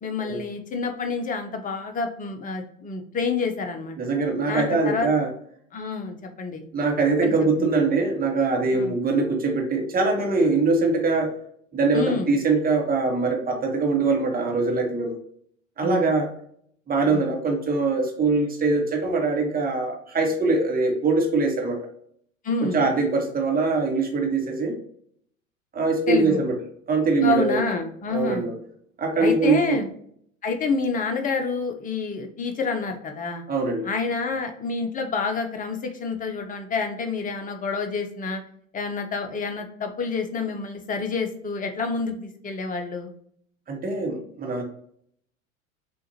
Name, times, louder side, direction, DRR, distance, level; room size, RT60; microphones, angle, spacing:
voice 1, 0.0-4.0 4.5-5.1 5.7-6.7 7.2-7.3 7.6-7.7 8.7-8.9 11.9-12.3 15.8-16.1 17.0-17.3 22.4-22.8 26.1-26.4 27.2-28.5 29.2-29.9 30.4-33.4 33.8-38.4 38.7-43.1, left 4 dB, 20° left, 5 dB, 0.7 m, -28 dB
voice 2, 4.0-5.3 6.7-11.3 11.7-15.2 15.8-16.3 16.9-21.9 22.6-24.8 25.7-26.6 26.9-27.6 28.1-28.5 29.0-29.8 33.5-33.9 43.7-44.6, right 3 dB, 20° right, 1 dB, 1.2 m, -23 dB
6.2 x 2.5 x 2.8 m, 0.65 s
figure-of-eight pair, 75°, 41 cm